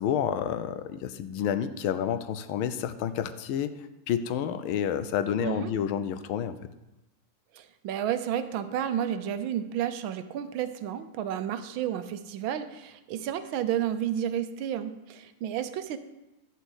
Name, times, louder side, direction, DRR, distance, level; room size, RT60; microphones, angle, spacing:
voice 1, 0.0-3.7 4.1-6.6, left 9 dB, 85° left, 12 dB, 1.5 m, -29 dB
voice 2, 5.4-5.7 7.5-16.0, right 10 dB, 80° right, 11 dB, 1.5 m, -31 dB
11.0 x 4.5 x 8.1 m, 0.97 s
omnidirectional pair, 2.2 m